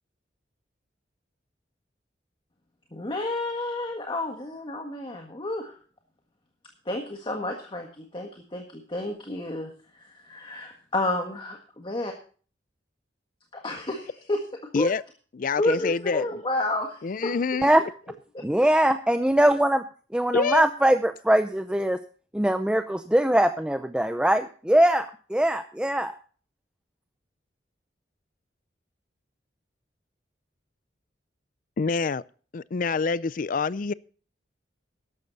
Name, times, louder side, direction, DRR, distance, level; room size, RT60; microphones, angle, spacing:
voice 1, 2.9-5.7 6.8-9.7 10.0-12.1 13.5-14.4 14.7-14.9 15.6-17.3 18.3-18.4, left 2 dB, 30° left, 1.6 m, -30 dB
voice 2, 15.3-16.4 17.0-17.7 20.3-20.7 31.8-32.2 32.5-33.9, left 4 dB, 50° left, 0.5 m, -26 dB
voice 3, 18.4-19.8 20.1-22.0 22.3-26.1, right 1 dB, 5° right, 0.5 m, -22 dB
13.5 x 11.5 x 4.0 m
head